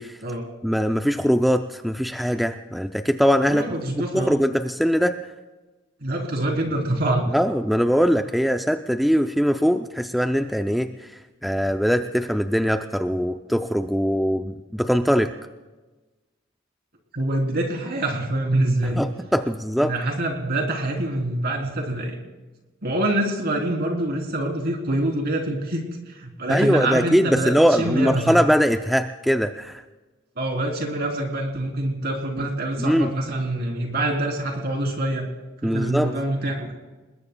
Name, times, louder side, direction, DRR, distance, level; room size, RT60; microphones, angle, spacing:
voice 1, 0.6-3.7 4.1-5.2 7.3-11.1 11.4-15.3 19.0-19.9 26.5-29.8 32.8-33.1 35.6-36.1, equal, ahead, 6 dB, 0.4 m, -21 dB
voice 2, 3.5-4.4 6.0-7.3 17.1-19.0 19.8-22.2 22.8-27.5 27.8-28.4 30.4-35.3 35.6-36.7, right 1 dB, 55° right, 1 dB, 3.4 m, -25 dB
29.0 x 20.5 x 2.2 m, 1.2 s
head